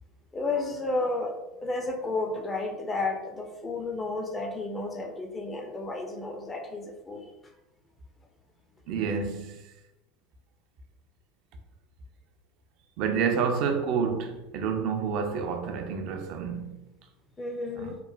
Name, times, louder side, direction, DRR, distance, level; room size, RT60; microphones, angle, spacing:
voice 1, 0.3-1.3 1.6-7.3 17.4-18.0, left 2 dB, 20° left, 0.4 m, -32 dB
voice 2, 8.9-9.6 13.0-16.8 17.8-18.0, right 6 dB, 50° right, 0.3 m, -29 dB
2.9 x 2.1 x 2.3 m
figure-of-eight pair, 75°, 0 cm